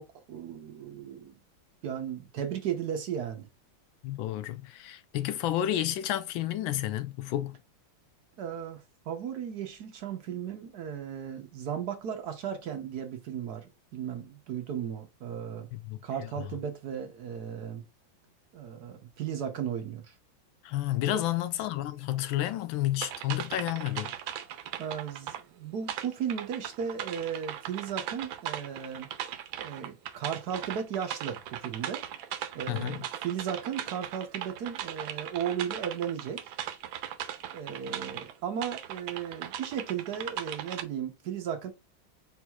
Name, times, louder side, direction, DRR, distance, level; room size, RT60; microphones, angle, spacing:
voice 1, 0.0-1.3 1.8-3.5 8.4-15.7 16.0-17.8 18.5-20.1 21.1-21.2 24.8-29.1 29.6-32.0 32.5-36.5 37.5-41.7, right 8 dB, 65° right, 1.1 m, -35 dB
voice 2, 4.0-7.6 15.7-16.0 20.6-24.1 32.7-33.0, left 13 dB, 80° left, 1.4 m, -31 dB
sound 1, 23.0-25.4 25.9-38.3 38.6-40.8, right 11 dB, 80° right, 1.4 m, -38 dB
4.5 x 4.4 x 2.3 m
omnidirectional pair, 2.2 m